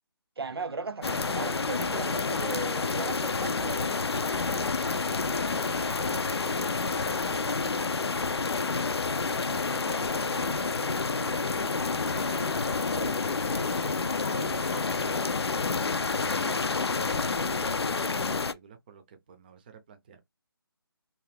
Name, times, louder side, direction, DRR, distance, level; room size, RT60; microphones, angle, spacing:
voice 1, 0.4-4.0, right 4 dB, 75° right, 0.6 m, -37 dB
sound 1, 1.0-18.5, left 4 dB, 90° left, 0.4 m, -29 dB
sound 2, 1.6-18.0, left 4 dB, 30° left, 0.7 m, -42 dB
voice 2, 4.3-7.9 8.2-14.0 14.3-20.2, right 7 dB, 25° right, 0.5 m, -49 dB
2.9 x 2.3 x 3.3 m
figure-of-eight pair, 155°, 13 cm